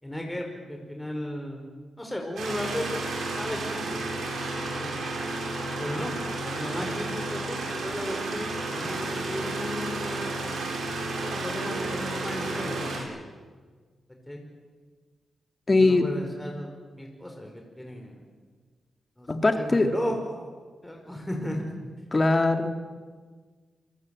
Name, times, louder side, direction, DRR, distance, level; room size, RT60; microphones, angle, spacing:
voice 1, 0.0-1.7 2.0-3.1 3.4-4.0 4.8-4.9 5.8-6.2 6.4-10.5 11.3-13.2 14.3-14.4 15.7-18.2 19.2-20.5 20.8-21.7, equal, 10° left, 2 dB, 5.2 m, -35 dB
sound 1, 2.4-13.0, right 2 dB, 85° right, 7.7 m, -32 dB
voice 2, 15.7-16.0 19.3-19.9 22.1-22.7, left 2 dB, 30° left, 6 dB, 3.1 m, -21 dB
28.5 x 19.0 x 9.2 m, 1.5 s
cardioid pair, 70°, 0 cm